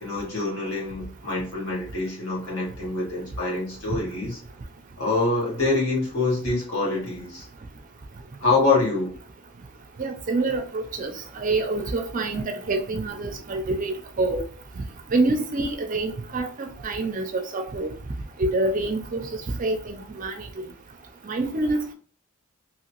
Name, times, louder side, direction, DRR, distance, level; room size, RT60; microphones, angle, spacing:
voice 1, 0.0-4.4 5.0-7.5 8.4-9.1, left 3 dB, 75° left, 1.5 m, -25 dB
voice 2, 10.0-14.4 14.8-14.9 15.1-17.9 18.4-19.3 19.6-20.5 21.3-21.9, right 2 dB, 35° right, 0.4 m, -26 dB
2.8 x 2.8 x 2.9 m
head